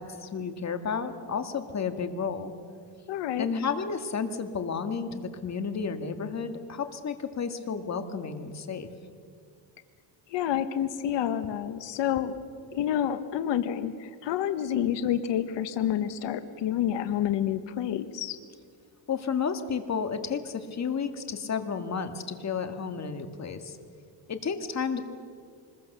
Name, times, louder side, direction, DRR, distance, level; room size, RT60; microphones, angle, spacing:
voice 1, 0.0-2.5 3.4-8.9 19.1-23.8 24.3-25.0, left 6 dB, 35° left, 7 dB, 2.0 m, -32 dB
voice 2, 3.1-3.5 10.3-12.3 12.7-18.4, left 10 dB, 70° left, 10 dB, 1.3 m, -28 dB
25.0 x 21.5 x 6.8 m, 2.1 s
cardioid pair, 110°, 45 cm